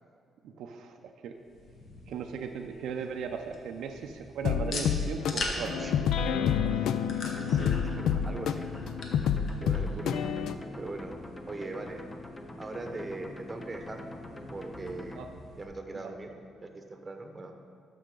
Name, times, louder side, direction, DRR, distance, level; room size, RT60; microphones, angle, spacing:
voice 1, 0.4-1.4 2.1-6.6 6.8-7.0 7.4-7.7 15.1-15.3 15.9-16.2, right 6 dB, 80° right, 5 dB, 0.5 m, -38 dB
sound 1, 1.4-15.6, left 2 dB, 55° left, 1.2 m, -43 dB
sound 2, 4.4-10.5, left 8 dB, 75° left, 0.3 m, -28 dB
voice 2, 5.8-6.1 6.4-6.5 7.1-8.7 9.6-10.2 10.8-11.2 11.5-12.0 12.6-14.1 14.5-15.2 15.6-16.3 16.6-17.5, right 2 dB, 25° right, 4 dB, 1.0 m, -40 dB
sound 3, 7.2-15.2, left 1 dB, 20° left, 0.6 m, -44 dB
12.5 x 5.5 x 3.8 m, 2.4 s
cardioid pair, 90°, 0 cm